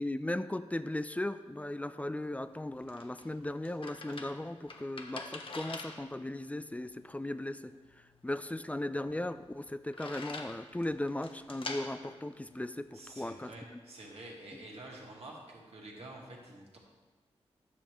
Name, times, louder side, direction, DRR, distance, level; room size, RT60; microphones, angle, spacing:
voice 1, 0.0-7.7 8.2-13.8 14.5-14.6, left 1 dB, 10° left, 12 dB, 0.4 m, -37 dB
sound 1, 2.5-13.3, left 3 dB, 50° left, 0.9 m, -47 dB
voice 2, 12.9-16.8, right 1 dB, 65° right, -2 dB, 1.8 m, -48 dB
9.8 x 6.5 x 3.1 m, 1.3 s
cardioid pair, 50°, 11 cm